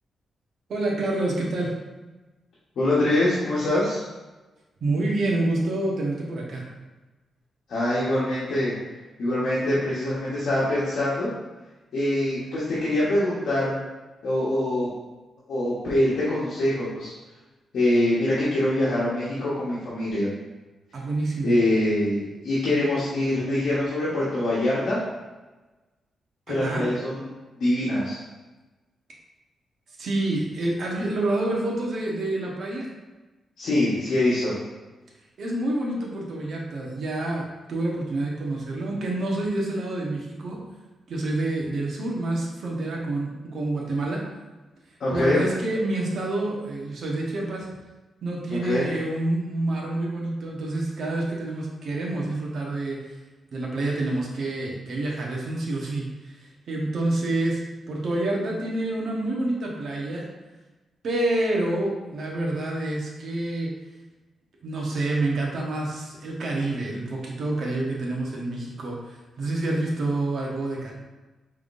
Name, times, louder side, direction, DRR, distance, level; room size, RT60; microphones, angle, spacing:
voice 1, 0.7-1.7 4.8-6.6 20.9-21.5 26.6-26.9 30.0-32.9 35.4-40.6 41.1-44.2 45.1-47.7 48.2-53.0 53.5-56.0 56.7-57.6 57.9-60.2 61.0-63.7 64.6-70.9, right 2 dB, 55° right, -3 dB, 1.1 m, -27 dB
voice 2, 2.8-4.0 7.7-8.7 9.2-11.3 11.9-13.8 14.2-14.9 15.5-17.1 17.7-20.3 21.4-25.0 26.5-27.3 27.6-28.2 33.6-34.5 45.0-45.4 48.5-48.9, left 1 dB, 65° left, -9 dB, 1.2 m, -24 dB
5.1 x 3.6 x 2.6 m, 1.2 s
wide cardioid pair, 140°, 0 cm